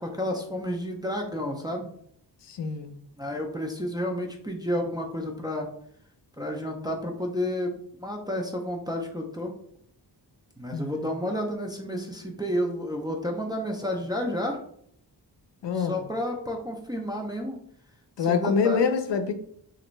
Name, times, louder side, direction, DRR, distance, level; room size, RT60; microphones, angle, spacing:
voice 1, 0.0-1.9 3.2-5.7 6.4-9.5 10.6-14.6 15.8-17.6 18.2-18.8, left 1 dB, 10° right, 0 dB, 0.3 m, -31 dB
voice 2, 2.5-2.9 10.7-11.1 15.6-16.0 18.2-19.3, left 6 dB, 80° left, 8 dB, 0.5 m, -25 dB
3.2 x 2.5 x 3.0 m, 0.66 s
wide cardioid pair, 165°, 42 cm